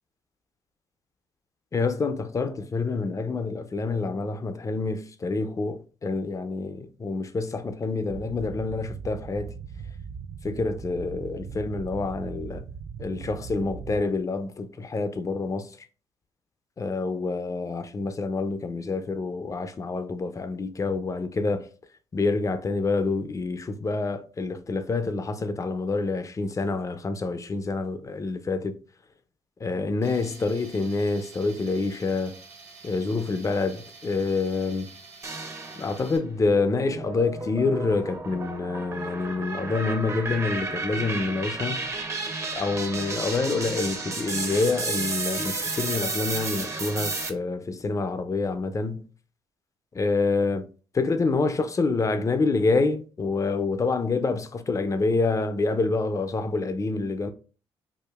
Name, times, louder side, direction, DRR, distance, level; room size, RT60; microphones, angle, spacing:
voice 1, 1.7-9.5 10.4-12.6 13.0-15.7 16.8-21.6 22.1-28.8 29.6-32.4 32.8-34.9 35.8-41.8 42.5-49.1 49.9-50.7 50.9-57.3, left 3 dB, 30° left, 0.5 m, -27 dB
sound 1, 8.1-14.0, right 6 dB, 50° right, 0.4 m, -39 dB
Tools, 30.0-36.2, right 4 dB, 75° right, 1.2 m, -48 dB
sound 2, 35.2-36.1 36.6-47.3, right 3 dB, 30° right, 0.7 m, -32 dB
4.8 x 2.5 x 2.4 m
supercardioid pair, 70°, 11 cm